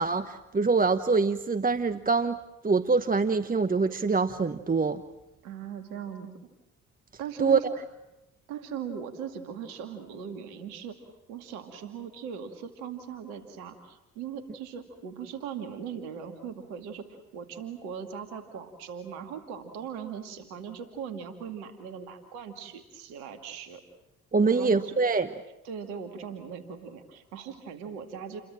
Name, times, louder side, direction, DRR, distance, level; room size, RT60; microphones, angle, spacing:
voice 1, 0.0-2.4 2.6-5.0 7.4-7.6 24.3-25.3, right 4 dB, 20° right, 10 dB, 1.1 m, -24 dB
voice 2, 5.4-6.5 7.2-7.6 8.5-17.0 17.3-23.8 24.5-24.9 25.6-28.4, right 7 dB, 75° right, 7 dB, 2.3 m, -39 dB
29.0 x 23.0 x 7.6 m, 0.94 s
hypercardioid pair, 50°, 43 cm